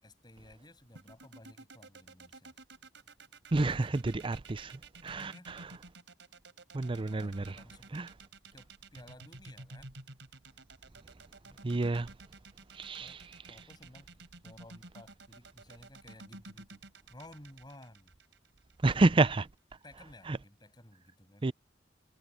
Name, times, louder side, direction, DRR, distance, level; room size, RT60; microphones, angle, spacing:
voice 1, 0.0-2.5 5.0-5.5 7.1-8.0 8.5-9.9 11.4-11.9 13.0-13.2 13.5-16.8 17.1-18.1 19.8-21.5, left 1 dB, 25° left, 7.3 m, -55 dB
sound 1, 1.0-19.1, right 3 dB, 75° right, 4.7 m, -51 dB
voice 2, 3.5-5.7 6.7-7.6 7.9-8.1 11.6-12.1 12.7-13.2 18.8-19.5 20.3-20.4 21.4-21.5, right 2 dB, 25° right, 0.5 m, -29 dB
head